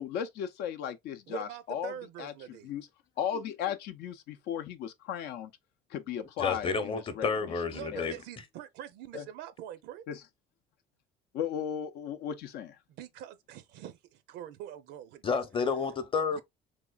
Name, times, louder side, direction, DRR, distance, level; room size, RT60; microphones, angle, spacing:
voice 1, 0.0-1.9 2.2-2.3 2.6-2.9 3.2-5.5 5.9-7.3 7.9-8.1 9.1-9.2 10.1-10.2 11.3-12.8, left 9 dB, 80° left, 0.5 m, -36 dB
voice 2, 1.3-2.7 7.7-10.0 12.9-15.2, right 10 dB, 85° right, 0.6 m, -44 dB
voice 3, 6.4-8.2 15.2-16.4, left 5 dB, 30° left, 0.7 m, -30 dB
3.5 x 3.1 x 2.3 m
cardioid pair, 110°, 17 cm